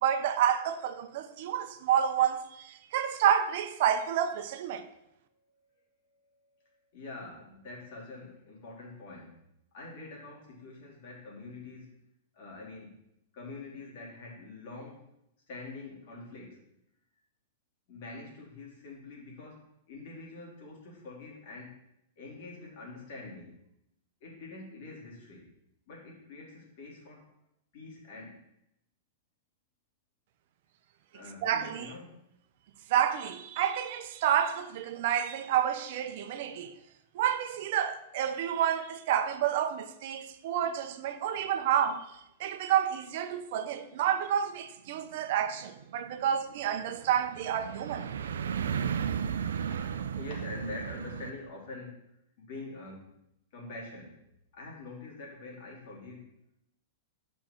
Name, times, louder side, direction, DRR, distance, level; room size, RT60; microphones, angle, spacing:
voice 1, 0.0-4.9 31.4-31.9 32.9-36.7 37.1-42.1 42.4-48.1, right 9 dB, 60° right, 0.7 m, -29 dB
voice 2, 6.9-9.4 9.7-11.9 12.3-12.9 13.3-15.0 15.5-16.6 17.9-21.7 22.2-23.6 24.2-25.5 25.9-27.3 27.7-28.4 31.1-32.2 41.3-41.6 43.9-44.0 49.7-52.0 52.4-53.1 53.5-54.2 54.5-56.3, left 3 dB, 60° left, 3.3 m, -45 dB
sound 1, 44.9-51.3, right 7 dB, 90° right, 0.5 m, -35 dB
7.6 x 5.4 x 4.5 m
hypercardioid pair, 135°, 0 cm